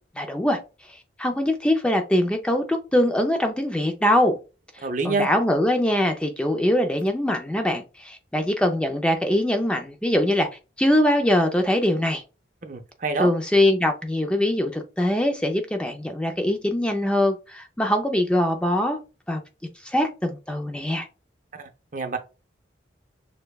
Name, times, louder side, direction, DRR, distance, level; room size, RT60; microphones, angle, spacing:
voice 1, 0.2-0.6 1.2-4.4 5.0-10.5 10.8-12.2 13.2-19.0 19.3-19.4 19.8-21.1, left 1 dB, 5° left, 0.4 m, -22 dB
voice 2, 4.8-5.3 12.6-13.3 21.5-22.2, right 3 dB, 45° right, 0.6 m, -27 dB
6.5 x 2.2 x 2.3 m
head